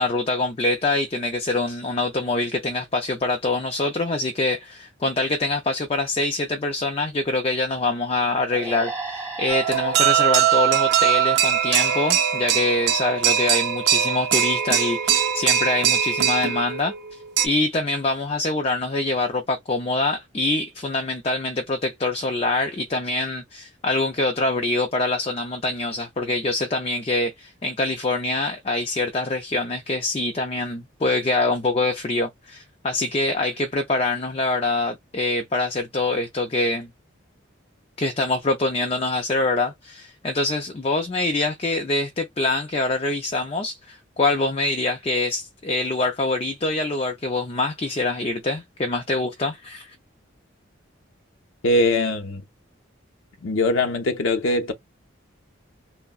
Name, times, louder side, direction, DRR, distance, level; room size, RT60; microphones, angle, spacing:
voice 1, 0.0-17.2 17.4-36.9 38.0-50.0, left 2 dB, 30° left, 0.4 m, -25 dB
sound 1, 8.5-12.0, right 3 dB, 10° right, 1.3 m, -36 dB
sound 2, 9.5-17.5, right 9 dB, 55° right, 0.5 m, -21 dB
voice 2, 51.6-52.4 53.4-54.7, left 2 dB, 80° left, 0.6 m, -21 dB
3.5 x 2.0 x 2.3 m
head